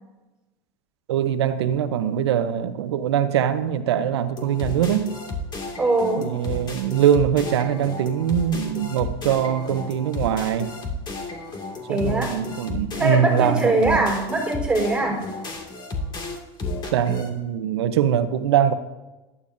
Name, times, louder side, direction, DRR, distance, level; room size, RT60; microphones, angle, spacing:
voice 1, 1.1-5.2 6.2-10.7 11.9-14.0 16.9-18.7, right 9 dB, 85° right, 0.9 m, -22 dB
sound 1, 4.4-17.3, left 2 dB, 35° left, 2.3 m, -33 dB
voice 2, 5.8-6.3 11.9-12.4 13.0-15.2, right 2 dB, 5° right, 4.0 m, -22 dB
16.0 x 12.5 x 2.7 m
supercardioid pair, 105°, 14 cm